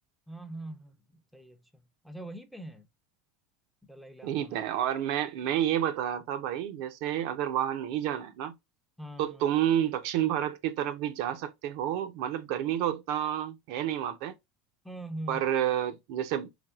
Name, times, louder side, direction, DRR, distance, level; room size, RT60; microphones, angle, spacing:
voice 1, 0.3-2.9 3.9-4.6 9.0-9.5 14.8-15.5, right 1 dB, ahead, 0.6 m, -43 dB
voice 2, 4.2-8.5 9.2-14.3 15.3-16.5, right 11 dB, 65° right, 0.6 m, -30 dB
3.5 x 3.4 x 2.2 m
supercardioid pair, 105°, 0 cm